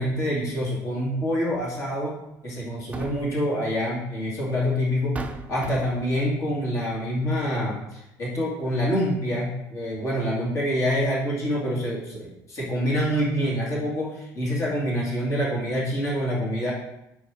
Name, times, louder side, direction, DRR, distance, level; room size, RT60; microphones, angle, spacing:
voice 1, 0.0-2.2 2.4-5.1 5.5-16.7, equal, 40° left, -5 dB, 2.5 m, -26 dB
sound 1, 1.5-1.7 2.7-3.4 4.5-4.6 5.2-6.2, right 3 dB, 20° right, 0.5 m, -36 dB
5.7 x 5.1 x 4.8 m, 0.86 s
cardioid pair, 135°, 7 cm